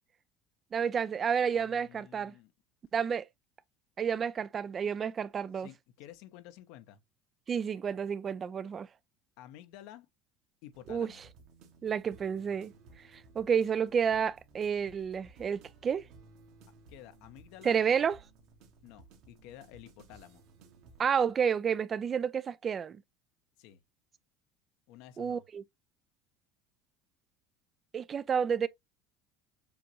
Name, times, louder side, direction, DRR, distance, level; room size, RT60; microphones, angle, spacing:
voice 1, 0.7-2.3 2.9-3.3 4.0-5.7 7.5-8.9 10.9-11.1 11.8-12.7 13.1-16.0 17.6-18.2 21.0-23.0 25.2-25.6 27.9-28.7, right 7 dB, 30° right, 0.4 m, -30 dB
voice 2, 1.6-2.5 5.6-7.0 9.4-10.1 10.6-11.2 16.9-17.8 18.8-20.4 23.6-23.8 24.9-25.4, left 12 dB, 70° left, 0.8 m, -52 dB
sound 1, 10.7-21.1, right 3 dB, 65° right, 1.5 m, -58 dB
7.0 x 2.6 x 2.9 m
supercardioid pair, 105°, 0 cm